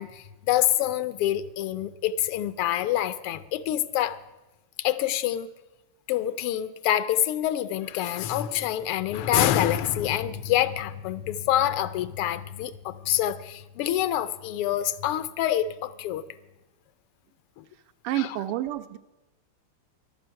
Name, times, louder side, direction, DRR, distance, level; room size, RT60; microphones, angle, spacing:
voice 1, 0.0-4.2 4.8-5.5 6.1-16.3 17.6-17.7 18.2-18.3, left 12 dB, 85° left, 14 dB, 1.6 m, -26 dB
voice 2, 18.0-19.0, right 14 dB, 90° right, 11 dB, 1.6 m, -29 dB
14.5 x 11.5 x 5.7 m, 1.0 s
omnidirectional pair, 2.4 m